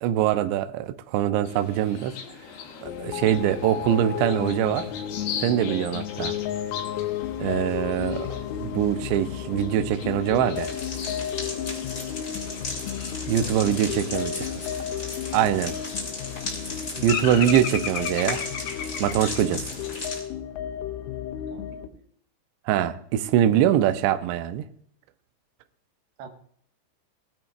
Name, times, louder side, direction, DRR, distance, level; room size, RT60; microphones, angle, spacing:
voice 1, 0.0-2.2 2.8-4.9 5.4-6.4 7.4-10.7 13.3-14.5 15.3-15.7 17.0-18.4 19.0-19.6 22.7-24.7, right 11 dB, 85° right, 2.6 m, -23 dB
sound 1, 1.4-20.1, left 7 dB, 70° left, 2.3 m, -38 dB
sound 2, 2.8-21.9, left 10 dB, 90° left, 3.5 m, -33 dB
sound 3, 10.5-20.2, left 2 dB, 20° left, 2.8 m, -36 dB
voice 2, 13.3-14.4 16.9-17.3 21.5-22.0 26.2-26.3, right 5 dB, 70° right, 2.5 m, -44 dB
19.0 x 12.5 x 2.5 m
omnidirectional pair, 5.9 m